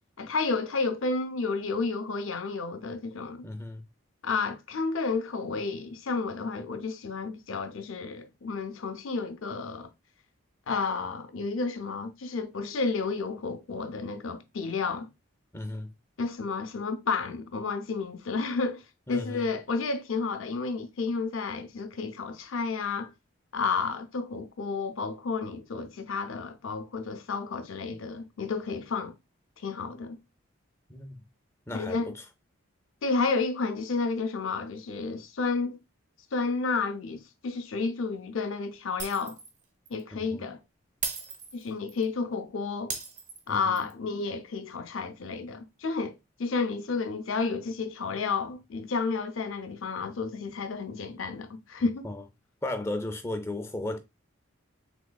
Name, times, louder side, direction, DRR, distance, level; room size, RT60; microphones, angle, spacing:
voice 1, 0.2-3.5 4.2-9.9 10.7-15.1 16.2-18.8 19.1-23.1 23.5-29.1 29.6-30.2 31.7-32.1 33.0-35.8 36.3-39.4 39.9-40.6 41.5-43.0 43.5-46.1 46.4-52.1, left 4 dB, 75° left, 0.5 m, -31 dB
voice 2, 3.4-3.8 15.5-15.9 19.1-19.5 30.9-31.2 31.7-32.3 40.1-40.5 43.5-43.9 51.8-52.2 52.6-54.0, left 2 dB, 15° left, 0.4 m, -35 dB
Shatter, 39.0-39.6 39.9-40.0 41.0-42.0 42.9-43.9, right 4 dB, 35° right, 0.6 m, -36 dB
3.5 x 3.1 x 2.2 m
head